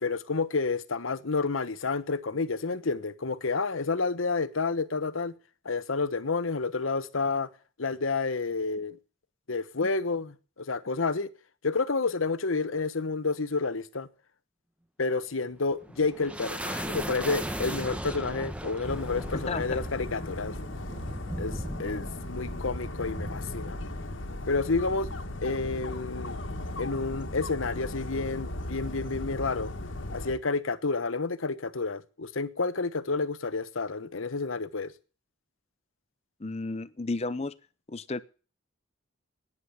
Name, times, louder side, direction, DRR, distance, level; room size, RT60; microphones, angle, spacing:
voice 1, 0.0-5.3 5.6-7.5 7.8-9.0 9.5-11.3 11.6-14.1 15.0-20.5 21.4-23.8 24.5-25.1 25.4-26.4 26.8-29.7 30.1-34.9, left 4 dB, 90° left, 1.1 m, -30 dB
sound 1, 15.5-26.2, equal, 5° right, 1.1 m, -38 dB
Dog, 18.8-30.3, left 1 dB, 75° left, 1.8 m, -37 dB
voice 2, 36.4-37.5 37.9-38.2, left 3 dB, 30° left, 0.6 m, -32 dB
14.0 x 9.9 x 8.5 m
head